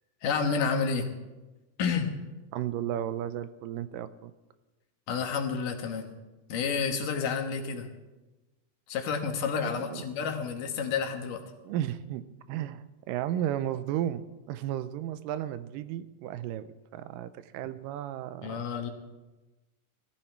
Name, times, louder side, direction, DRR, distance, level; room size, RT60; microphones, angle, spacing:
voice 1, 0.2-1.0 1.8-2.1 5.1-6.1 6.5-7.9 8.9-11.4 18.4-18.9, left 6 dB, 75° left, 4 dB, 2.9 m, -30 dB
voice 2, 2.5-4.3 9.6-10.0 11.6-12.2 12.5-18.6, right 11 dB, 85° right, 13 dB, 2.3 m, -34 dB
19.5 x 14.0 x 4.5 m, 1.1 s
omnidirectional pair, 3.9 m